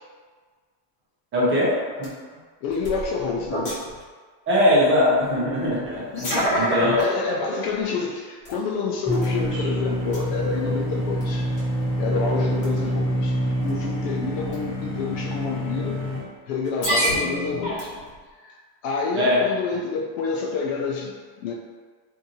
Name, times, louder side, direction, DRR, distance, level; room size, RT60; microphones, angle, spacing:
voice 1, 1.3-2.1 4.5-6.0 6.3-7.0 19.1-19.4, left 1 dB, 25° right, -7 dB, 0.7 m, -21 dB
sound 1, 2.0-2.1 2.7-4.0 4.7-4.8 5.9-7.0 7.7-7.8 8.4-8.5 9.1-9.8 10.1-10.2 11.2-11.3 11.6-11.8 12.6-12.9 13.6-13.9 14.5-14.6 15.5-15.6 16.6-18.2, equal, 40° left, 1.1 m, -26 dB
voice 2, 2.6-3.7 6.1-11.5 12.0-16.0 16.5-18.0 18.4-21.5, left 4 dB, 55° left, -1 dB, 0.5 m, -28 dB
sound 2, 9.1-16.2, equal, 15° left, 1.4 m, -26 dB
2.7 x 2.6 x 2.6 m, 1.5 s
supercardioid pair, 145°, 49 cm